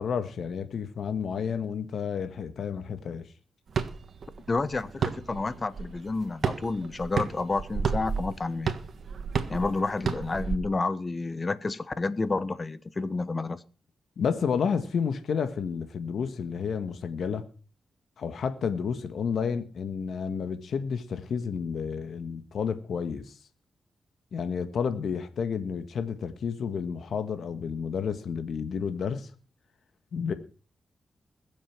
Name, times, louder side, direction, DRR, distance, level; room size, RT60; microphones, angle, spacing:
voice 1, 0.0-3.3 14.2-17.4 18.2-23.4 24.3-29.3 30.1-30.3, left 6 dB, 75° left, 1.7 m, -31 dB
sound 1, 3.7-10.6, right 6 dB, 65° right, 1.6 m, -32 dB
voice 2, 4.5-8.7 9.5-13.6, left 3 dB, 35° left, 1.3 m, -30 dB
21.0 x 7.3 x 6.0 m
cardioid pair, 60°, 0 cm